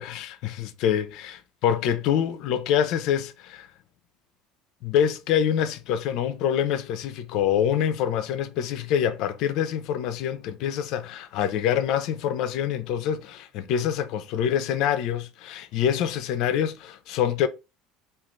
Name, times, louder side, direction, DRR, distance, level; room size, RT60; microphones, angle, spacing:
voice 1, 0.0-3.7 4.8-17.5, left 9 dB, 65° left, 0.4 m, -26 dB
2.5 x 2.3 x 3.1 m
supercardioid pair, 85°, 0 cm